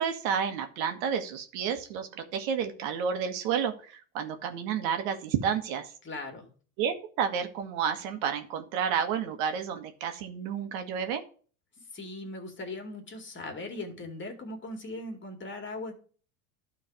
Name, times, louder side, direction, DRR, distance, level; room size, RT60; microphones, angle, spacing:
voice 1, 0.0-5.9 6.8-11.2, right 7 dB, 75° right, 6 dB, 1.6 m, -30 dB
voice 2, 6.0-6.5 11.9-15.9, left 2 dB, 25° left, 4 dB, 2.5 m, -39 dB
11.5 x 3.9 x 5.0 m, 0.41 s
supercardioid pair, 100°, 42 cm